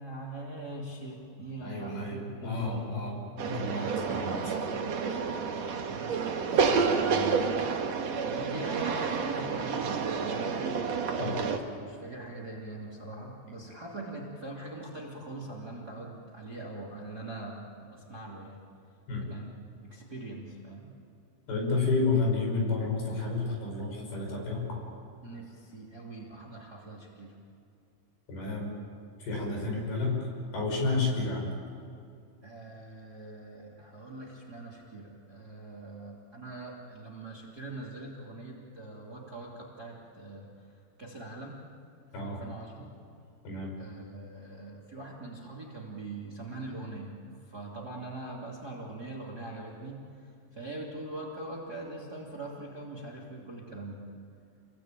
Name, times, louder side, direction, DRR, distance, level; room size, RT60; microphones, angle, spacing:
voice 1, 0.0-3.7 4.8-4.9 5.9-7.6 8.2-10.7 11.4-18.6 19.2-19.5 19.8-20.9 25.2-27.4 29.5-29.8 32.4-40.5 41.0-41.6 42.2-42.9 43.8-47.1 47.4-54.0, right 2 dB, 25° right, -1 dB, 2.7 m, -42 dB
voice 2, 1.6-3.2 3.5-4.5 11.2-11.4 19.1-19.3 21.5-24.8 28.3-28.7 29.2-31.5 42.1-42.4 43.4-43.7, left 3 dB, 65° left, 0 dB, 7.9 m, -31 dB
sound 1, 3.4-11.6, right 5 dB, 55° right, 2.2 m, -29 dB
29.0 x 22.0 x 9.0 m, 2.5 s
omnidirectional pair, 4.9 m